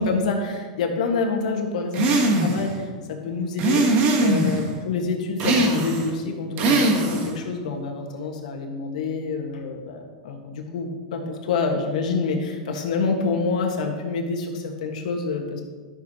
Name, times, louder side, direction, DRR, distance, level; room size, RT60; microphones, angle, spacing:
voice 1, 0.0-3.9 4.2-15.6, left 4 dB, 75° left, 2 dB, 1.6 m, -27 dB
sound 1, 1.9-2.7 3.6-4.6 5.4-6.1 6.6-7.4, right 2 dB, 40° right, 1.4 m, -20 dB
13.0 x 6.4 x 2.9 m, 1.5 s
supercardioid pair, 140°, 4 cm